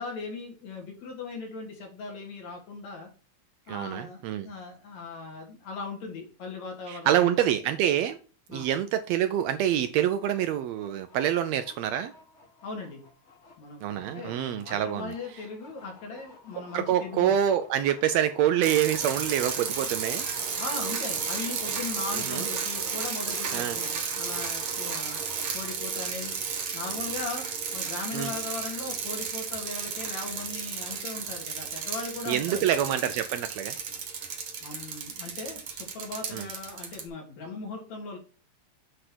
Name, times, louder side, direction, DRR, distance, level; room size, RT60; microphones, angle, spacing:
voice 1, 0.0-3.1 3.7-7.3 8.5-8.7 12.6-13.0 13.6-17.4 20.6-25.2 25.5-32.7 34.6-38.2, left 4 dB, 70° left, 3.4 m, -39 dB
voice 2, 3.7-4.5 6.9-8.2 8.5-12.1 13.8-15.1 16.6-20.2 22.1-22.5 23.5-23.8 28.1-28.3 32.3-33.8 36.3-36.5, right 10 dB, 80° right, 1.6 m, -26 dB
sound 1, 10.5-25.4, left 3 dB, 40° left, 1.0 m, -51 dB
sound 2, 18.6-37.0, right 6 dB, 55° right, 1.9 m, -33 dB
7.9 x 3.2 x 5.9 m
omnidirectional pair, 3.3 m